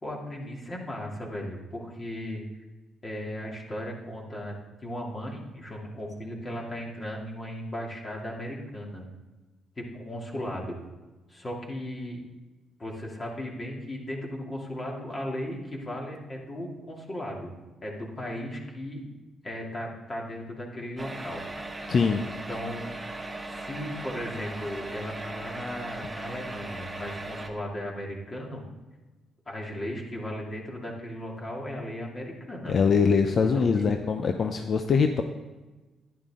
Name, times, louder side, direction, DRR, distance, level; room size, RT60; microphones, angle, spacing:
voice 1, 0.0-2.4 3.0-4.6 4.8-9.0 9.8-10.8 11.3-12.2 12.8-17.5 17.8-19.0 19.4-21.4 22.5-22.9 23.5-28.6 29.5-32.7 33.5-33.9, left 1 dB, 30° left, -1 dB, 2.8 m, -36 dB
sound 1, 21.0-27.5, right 2 dB, 15° right, 1.6 m, -38 dB
voice 2, 21.9-22.2 32.7-35.2, left 5 dB, 50° left, 6 dB, 0.7 m, -23 dB
11.0 x 10.5 x 3.8 m, 1.2 s
cardioid pair, 90°, 0 cm